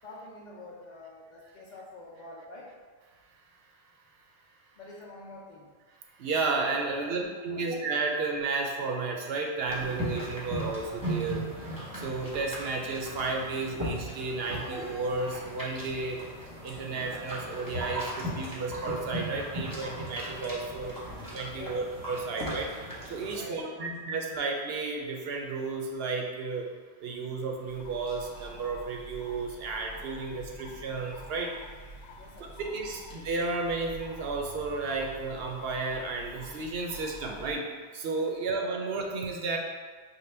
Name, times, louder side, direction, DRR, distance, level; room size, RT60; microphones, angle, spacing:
voice 1, 0.0-2.7 4.8-5.7 7.0-7.6 21.5-21.8 23.3-23.9 32.1-32.6 38.3-38.5, left 2 dB, 55° left, -4 dB, 0.6 m, -47 dB
voice 2, 6.1-11.4 11.9-16.2 16.6-21.0 21.3-22.7 23.1-26.7 27.0-31.5 32.4-39.6, right 3 dB, 70° right, 1 dB, 0.7 m, -32 dB
sound 1, 9.6-23.4, equal, 20° right, 0.9 m, -37 dB
sound 2, 27.7-37.6, equal, 80° left, 0.9 m, -47 dB
5.3 x 2.2 x 3.3 m, 1.5 s
omnidirectional pair, 1.1 m